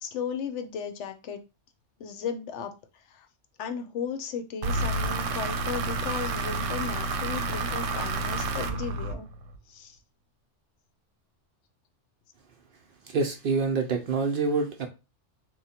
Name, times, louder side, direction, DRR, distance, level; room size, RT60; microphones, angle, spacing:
voice 1, 0.0-1.4 2.0-3.3 3.6-9.3 9.7-10.0, left 6 dB, 75° left, 0.9 m, -35 dB
sound 1, 4.6-9.6, right 2 dB, 85° right, 0.9 m, -30 dB
voice 2, 13.0-14.9, right 4 dB, 60° right, 0.6 m, -26 dB
3.0 x 2.1 x 4.1 m
omnidirectional pair, 1.2 m